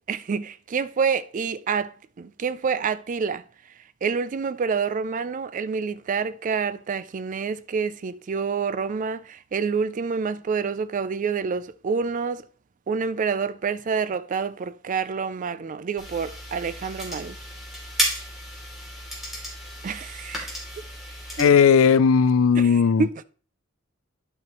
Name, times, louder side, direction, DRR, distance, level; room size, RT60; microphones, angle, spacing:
voice 1, 0.1-3.4 4.0-12.4 12.9-17.4 19.8-20.5 21.4-21.5 22.6-23.2, right 5 dB, 40° right, 0.4 m, -27 dB
sound 1, 16.0-21.4, equal, ahead, 2.8 m, -33 dB
voice 2, 21.4-23.1, left 6 dB, 75° left, 0.4 m, -17 dB
10.5 x 5.8 x 3.0 m
head